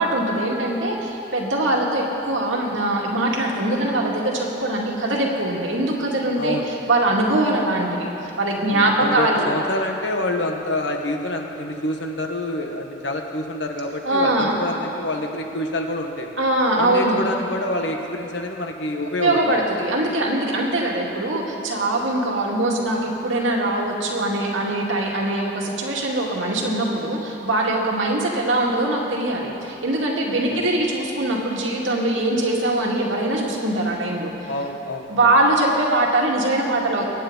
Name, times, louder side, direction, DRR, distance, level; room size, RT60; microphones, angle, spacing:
voice 1, 0.0-6.6 6.9-8.1 8.4-9.5 14.0-14.6 16.4-17.2 19.2-34.5 35.1-37.1, right 1 dB, 90° right, -2 dB, 2.2 m, -22 dB
voice 2, 6.4-6.7 8.7-16.4 16.8-19.4 30.3-30.6 34.5-35.3, left 1 dB, 65° left, 3 dB, 1.3 m, -27 dB
23.0 x 9.6 x 4.0 m, 3.0 s
head